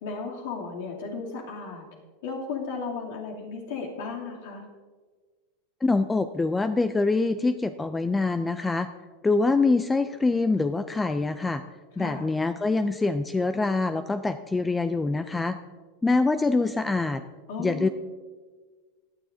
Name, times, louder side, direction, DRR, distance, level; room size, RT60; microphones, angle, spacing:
voice 1, 0.0-1.8 2.2-4.7 12.0-12.3 17.5-17.9, left 4 dB, 70° left, -2 dB, 2.7 m, -35 dB
voice 2, 5.8-8.9 9.2-11.6 12.0-15.6 16.0-17.2 17.6-17.9, left 3 dB, 10° left, 10 dB, 0.3 m, -25 dB
17.5 x 10.0 x 2.7 m, 1.4 s
supercardioid pair, 150°, 0 cm